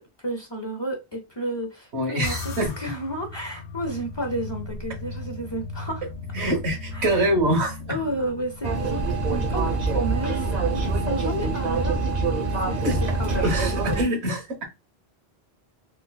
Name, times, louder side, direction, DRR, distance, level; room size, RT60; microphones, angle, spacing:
voice 1, 0.0-6.0 6.9-7.1 7.9-12.9 13.2-13.5 13.9-14.0, right 1 dB, 30° left, 0.6 m, -32 dB
voice 2, 1.9-2.7 6.3-8.0 12.8-13.0 13.4-14.6, right 1 dB, 85° right, 1.4 m, -24 dB
sound 1, 2.2-12.8, left 3 dB, 85° left, 1.0 m, -38 dB
sound 2, 8.6-14.0, right 3 dB, 45° right, 0.8 m, -25 dB
3.8 x 2.7 x 2.2 m
omnidirectional pair, 1.1 m